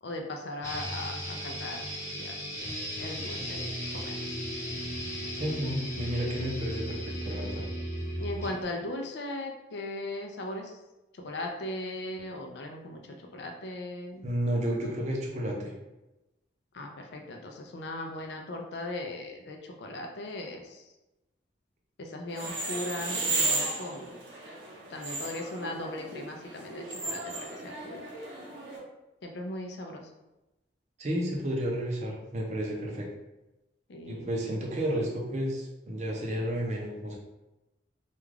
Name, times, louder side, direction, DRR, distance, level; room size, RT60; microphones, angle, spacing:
voice 1, 0.0-1.8 2.1-2.4 3.0-4.4 8.2-10.8 11.1-14.2 16.7-20.9 22.0-24.1 24.9-28.0 29.2-30.1 33.9-34.3, left 1 dB, 65° left, 3 dB, 0.4 m, -38 dB
sound 1, 0.6-8.6, equal, 15° left, 0.9 m, -36 dB
voice 2, 5.3-7.6 14.2-15.7 31.0-33.1 34.1-37.2, equal, 40° right, -1 dB, 0.5 m, -31 dB
sound 2, 22.3-28.8, right 3 dB, 80° right, 0.8 m, -34 dB
2.4 x 2.3 x 3.2 m, 0.98 s
head